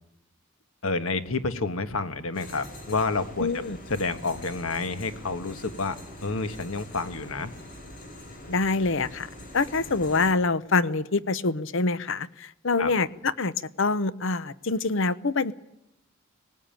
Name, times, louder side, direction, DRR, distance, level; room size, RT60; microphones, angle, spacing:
voice 1, 0.8-3.6 3.9-6.0 6.2-7.5 12.8-12.9, left 3 dB, 80° left, 10 dB, 1.5 m, -29 dB
sound 1, 2.3-10.3, left 1 dB, 40° left, 4.4 m, -44 dB
voice 2, 3.4-3.8 8.5-9.3 9.5-13.5 13.8-15.5, left 3 dB, 60° left, 16 dB, 0.8 m, -25 dB
18.5 x 18.5 x 9.1 m, 0.86 s
head